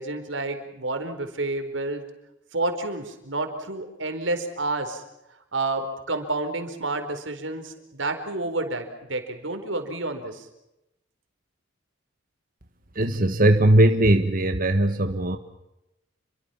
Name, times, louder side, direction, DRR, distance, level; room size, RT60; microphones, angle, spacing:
voice 1, 0.0-2.0 2.5-5.0 5.5-10.5, right 2 dB, 80° right, 6 dB, 4.5 m, -29 dB
voice 2, 12.9-15.4, right 1 dB, 50° right, 7 dB, 1.7 m, -19 dB
29.5 x 23.5 x 5.8 m, 0.90 s
head